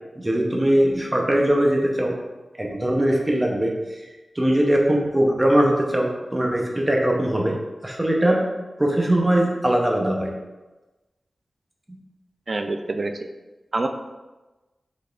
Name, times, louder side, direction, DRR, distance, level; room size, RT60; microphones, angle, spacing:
voice 1, 0.2-2.2 2.6-3.7 4.4-7.6 7.8-8.4 8.8-10.3, right 1 dB, 15° right, -1 dB, 0.7 m, -20 dB
voice 2, 12.5-13.3 13.7-13.9, right 2 dB, 45° right, 6 dB, 0.4 m, -26 dB
5.4 x 4.0 x 2.4 m, 1.1 s
wide cardioid pair, 110°, 0 cm